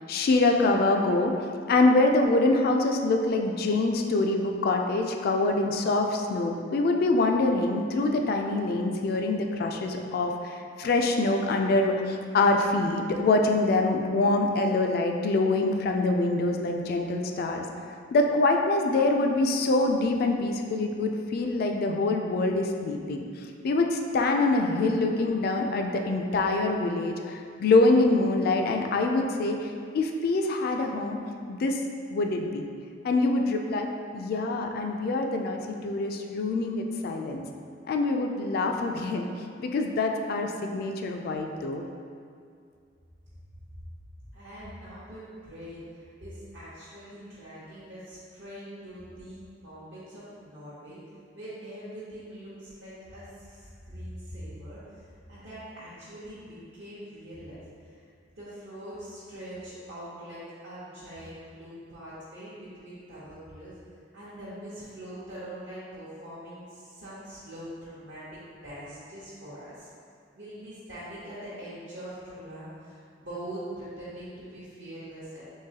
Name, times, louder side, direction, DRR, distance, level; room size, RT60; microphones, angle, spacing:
voice 1, 0.1-1.4 1.7-17.6 18.1-23.2 23.6-31.2 31.5-31.8 32.1-32.7 33.0-33.9 34.1-37.4 37.9-39.3 39.6-41.8, left 2 dB, 55° left, 3 dB, 0.3 m, -25 dB
voice 2, 44.3-51.0 51.3-58.1 58.4-63.8 64.1-69.9 70.3-75.6, right 1 dB, 70° right, -12 dB, 0.8 m, -43 dB
3.8 x 3.1 x 2.7 m, 2.3 s
head